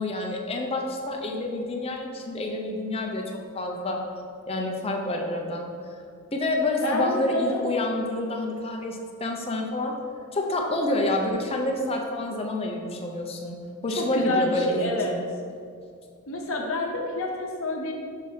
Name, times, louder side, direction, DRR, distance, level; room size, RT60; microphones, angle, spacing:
voice 1, 0.0-3.2 3.5-4.0 4.5-5.7 6.3-9.9 10.3-13.6 13.8-15.2, left 1 dB, 25° left, 1 dB, 0.5 m, -28 dB
voice 2, 6.8-7.7 14.0-15.2 16.3-17.9, left 2 dB, 60° left, 1 dB, 0.8 m, -28 dB
5.6 x 5.6 x 3.1 m, 2.3 s
head